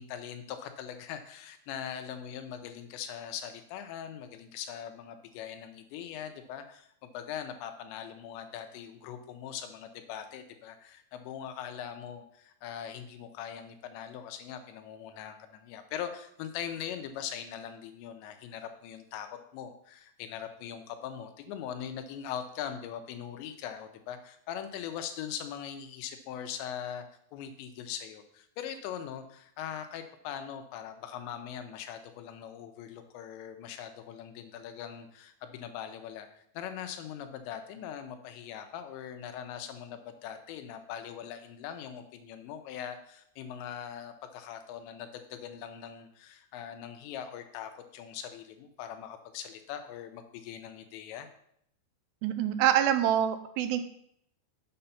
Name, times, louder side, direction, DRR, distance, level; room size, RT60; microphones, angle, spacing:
voice 1, 0.0-27.0 27.3-51.3, left 9 dB, 85° left, 7 dB, 3.1 m, -41 dB
voice 2, 52.2-53.8, right 10 dB, 85° right, 10 dB, 2.5 m, -26 dB
7.7 x 5.6 x 5.7 m, 0.71 s
omnidirectional pair, 5.2 m